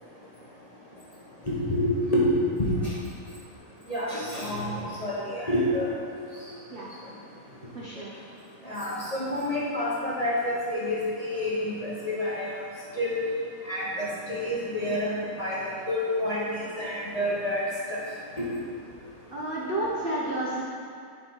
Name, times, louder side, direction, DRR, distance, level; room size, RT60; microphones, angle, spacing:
voice 1, 1.5-2.8 3.9-5.9 8.6-12.5 13.0-13.2 13.7-15.6 15.9-16.4 16.8-18.0 18.4-18.5, left 1 dB, 30° left, -7 dB, 1.0 m, -28 dB
voice 2, 7.7-8.2 19.3-20.6, right 1 dB, 45° right, -6 dB, 0.9 m, -31 dB
7.6 x 4.9 x 4.5 m, 2.3 s
omnidirectional pair, 1.7 m